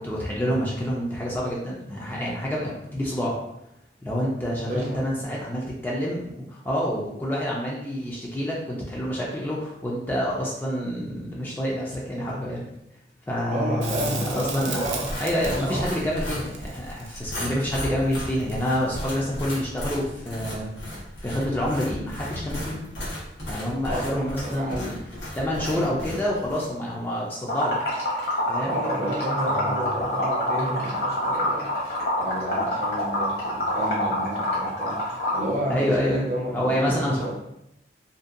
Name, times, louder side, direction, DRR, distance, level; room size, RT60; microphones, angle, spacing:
voice 1, 0.0-3.4 4.0-12.7 13.3-14.8 15.2-20.7 21.2-22.8 23.5-25.0 25.4-27.8 28.5-28.7 29.5-29.9 35.7-36.3 36.5-37.3, equal, 10° left, -4 dB, 0.3 m, -28 dB
voice 2, 4.6-5.0 13.5-15.9 23.8-25.0 25.5-26.1 28.6-31.7 32.2-37.3, right 1 dB, 40° right, -2 dB, 0.5 m, -31 dB
Crackle, 13.8-18.9 21.7-21.8, right 5 dB, 85° right, 0.5 m, -37 dB
sound 1, 14.8-26.7, equal, 90° left, 1.0 m, -35 dB
Liquid, 27.5-35.5, left 1 dB, 60° left, 0.9 m, -26 dB
2.6 x 2.2 x 2.4 m, 0.83 s
head